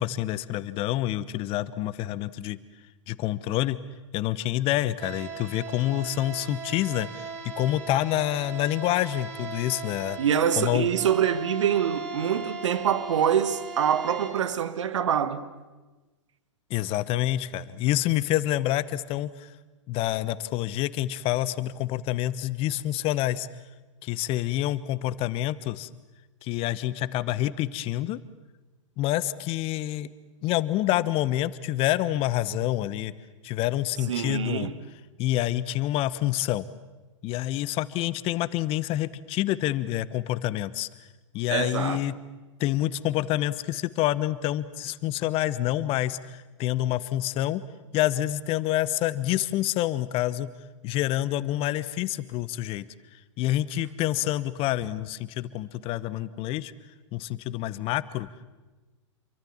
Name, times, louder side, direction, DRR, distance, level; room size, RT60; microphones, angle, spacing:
voice 1, 0.0-2.6 3.1-3.8 4.1-10.2 10.6-10.9 16.7-19.5 19.9-23.5 24.0-25.9 26.4-28.2 29.0-30.1 30.4-33.1 33.4-34.7 35.2-36.7 37.2-40.9 41.3-42.2 42.6-47.6 47.9-50.5 50.8-52.8 53.4-56.7 57.1-58.3, left 14 dB, 35° left, 1.1 m, -27 dB
sound 1, 5.0-14.3, right 4 dB, 50° right, 4.9 m, -39 dB
voice 2, 10.2-15.4 34.1-34.7 41.5-42.1, right 9 dB, 70° right, 1.7 m, -25 dB
27.5 x 23.5 x 7.3 m
figure-of-eight pair, 105°, 16 cm